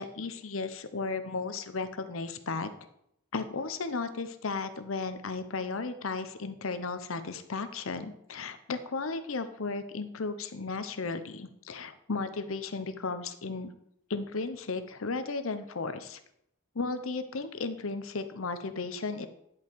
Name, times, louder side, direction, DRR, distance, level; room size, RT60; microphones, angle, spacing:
voice 1, 0.0-2.7 3.3-13.7 14.1-16.2 16.7-19.3, left 4 dB, 75° left, 10 dB, 0.8 m, -35 dB
10.0 x 5.8 x 4.6 m, 0.74 s
head